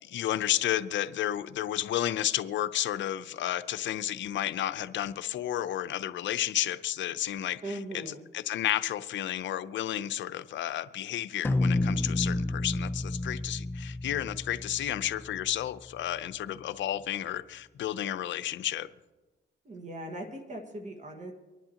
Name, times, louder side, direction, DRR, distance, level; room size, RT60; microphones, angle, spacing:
voice 1, 0.0-18.9, left 12 dB, 70° left, 12 dB, 0.7 m, -32 dB
voice 2, 7.6-8.2 19.7-21.3, right 1 dB, 40° right, 3 dB, 1.7 m, -39 dB
sound 1, 11.4-16.0, left 2 dB, 10° left, 0.6 m, -31 dB
24.5 x 10.5 x 2.9 m, 1.2 s
cardioid pair, 90°, 20 cm